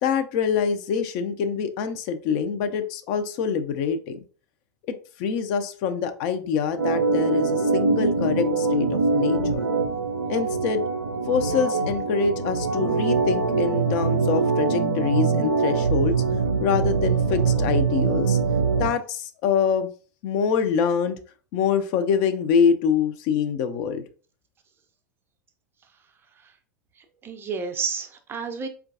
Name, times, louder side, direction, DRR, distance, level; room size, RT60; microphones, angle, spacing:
voice 1, 0.0-4.2 5.2-9.7 10.3-10.8 11.3-16.1 16.6-18.4 18.8-19.9 20.2-21.2 21.5-24.0, left 6 dB, 45° left, 8 dB, 0.4 m, -25 dB
Organ, 6.8-18.9, right 4 dB, 85° right, 0.4 m, -23 dB
voice 2, 27.0-28.7, right 5 dB, 25° right, 7 dB, 0.5 m, -31 dB
4.4 x 2.3 x 2.4 m, 0.38 s
figure-of-eight pair, 85°, 10 cm